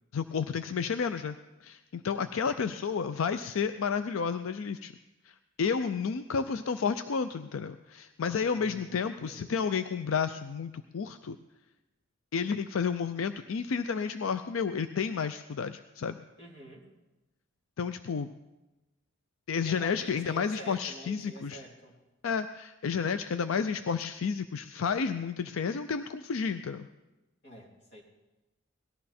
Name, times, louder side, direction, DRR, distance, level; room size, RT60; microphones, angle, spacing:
voice 1, 0.1-1.4 1.6-4.9 5.3-11.4 12.3-16.2 17.8-18.3 19.5-21.6 22.2-26.9, left 6 dB, 85° left, 10 dB, 0.5 m, -31 dB
voice 2, 8.5-9.6 16.4-16.8 19.6-22.0 27.4-28.0, right 1 dB, 55° left, -2 dB, 3.3 m, -48 dB
18.5 x 13.0 x 4.3 m, 1.0 s
head